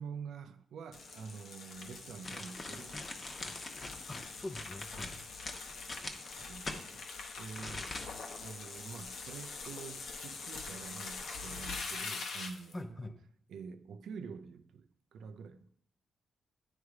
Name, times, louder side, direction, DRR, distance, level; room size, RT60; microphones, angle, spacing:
voice 1, 0.0-3.0 3.3-3.6 6.4-7.0 7.4-8.0 8.4-12.8 13.5-15.7, right 5 dB, 80° right, 0.4 m, -47 dB
sound 1, 0.9-12.8, left 4 dB, 80° left, 0.9 m, -44 dB
sound 2, 2.2-6.8 7.5-8.3 8.7-8.8, left 2 dB, 40° left, 1.0 m, -43 dB
voice 2, 4.1-5.1 12.7-13.2, left 1 dB, 20° left, 0.6 m, -43 dB
9.4 x 3.2 x 4.8 m
cardioid pair, 75°, 0 cm